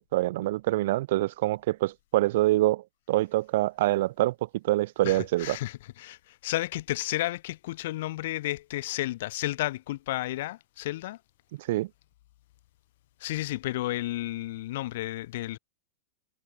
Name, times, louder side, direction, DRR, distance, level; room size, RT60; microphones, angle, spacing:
voice 1, 0.0-4.3 4.6-5.6 11.6-11.9, right 17 dB, 60° right, 1.2 m, -25 dB
voice 2, 5.0-11.2 13.2-15.6, left 16 dB, 65° left, 3.1 m, -32 dB
hypercardioid pair, 110°, 0 cm